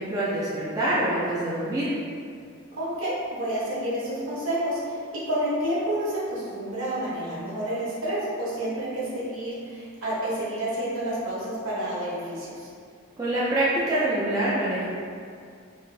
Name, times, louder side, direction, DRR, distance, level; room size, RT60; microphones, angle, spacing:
voice 1, 0.0-1.9 13.2-14.9, right 1 dB, 15° right, -9 dB, 0.4 m, -25 dB
voice 2, 2.8-12.7, right 1 dB, 65° right, -8 dB, 1.2 m, -29 dB
3.1 x 2.9 x 3.3 m, 2.3 s
head